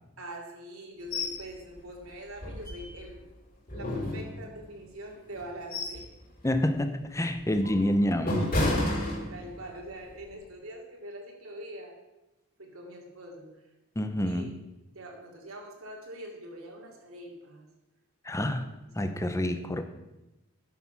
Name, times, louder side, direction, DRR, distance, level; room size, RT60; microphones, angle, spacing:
voice 1, 0.2-3.2 3.7-6.0 8.7-11.9 12.6-13.5 14.2-14.5 14.9-17.6, right 1 dB, 75° right, 0 dB, 2.5 m, -43 dB
sound 1, 1.1-1.4 1.8-1.9 2.4-3.2 3.7-4.7 5.3-6.1 6.5-6.7 7.3-9.7 10.1-10.3, left 1 dB, 45° left, 3.8 m, -31 dB
voice 2, 6.4-8.5 14.0-14.6 18.2-18.7 18.9-19.8, left 1 dB, 15° left, 8 dB, 0.7 m, -28 dB
11.0 x 6.8 x 5.8 m, 0.98 s
head